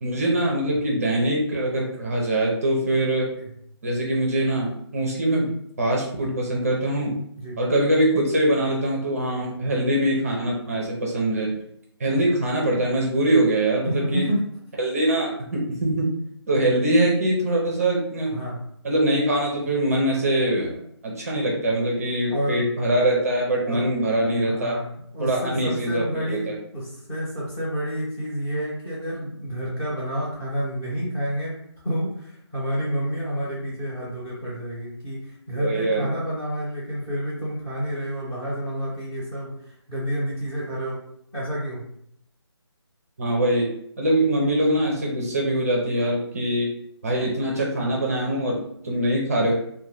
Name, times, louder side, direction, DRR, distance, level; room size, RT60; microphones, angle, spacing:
voice 1, 0.0-3.3 3.8-5.5 5.8-7.1 7.6-11.5 12.0-14.3 14.8-16.1 16.5-18.3 18.8-24.8 25.2-26.5 35.5-36.1 43.2-43.7 44.0-46.7 47.0-49.5, right 1 dB, 30° right, -2 dB, 0.6 m, -23 dB
voice 2, 12.1-12.4 13.9-14.4 18.3-18.6 22.3-22.6 23.6-23.9 24.5-31.5 31.8-41.0 41.3-41.8, equal, 10° left, -9 dB, 0.9 m, -29 dB
2.6 x 2.2 x 3.3 m, 0.71 s
figure-of-eight pair, 155°, 15 cm